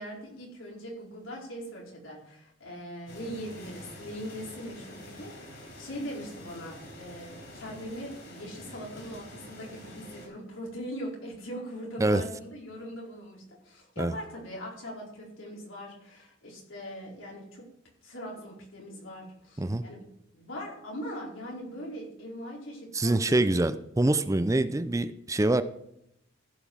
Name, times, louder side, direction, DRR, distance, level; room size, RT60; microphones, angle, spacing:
voice 1, 0.0-17.7 18.0-20.0 20.3-23.6, equal, 90° left, -3 dB, 4.7 m, -41 dB
sound 1, 3.1-10.3, left 1 dB, 60° left, 5.3 m, -47 dB
voice 2, 22.9-25.6, right 2 dB, 15° right, 12 dB, 0.5 m, -25 dB
15.0 x 6.0 x 6.3 m, 0.79 s
head